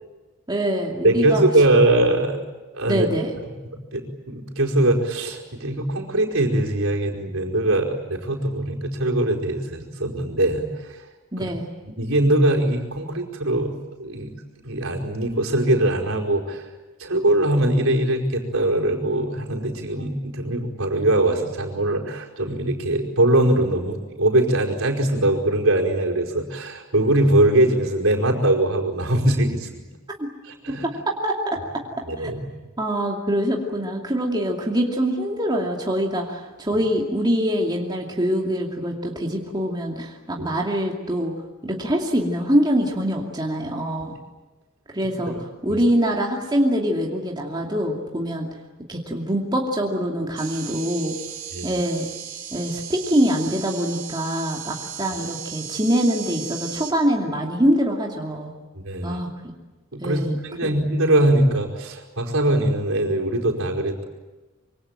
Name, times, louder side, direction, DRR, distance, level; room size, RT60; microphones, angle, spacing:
voice 1, 0.5-1.4 2.9-3.3 11.3-11.7 30.2-30.3 30.7-31.6 32.2-32.3 32.8-41.3 41.6-44.2 44.9-48.5 48.9-51.1 51.6-52.0 52.5-58.5 59.0-59.5 60.0-60.4 60.6-60.7, equal, 20° right, -1 dB, 2.6 m, -24 dB
voice 2, 1.0-2.4 2.7-3.1 3.4-3.5 3.9-11.0 11.4-11.5 12.0-13.7 14.0-14.3 14.6-16.7 17.0-29.7 30.4-30.9 32.1-32.4 40.4-40.5 45.2-45.4 45.7-45.8 51.5-51.8 58.7-59.2 59.9-64.0, right 1 dB, 65° right, 0 dB, 5.0 m, -21 dB
sound 1, 50.4-56.9, right 9 dB, 40° right, 3.7 m, -36 dB
26.0 x 24.5 x 9.0 m, 1.2 s
head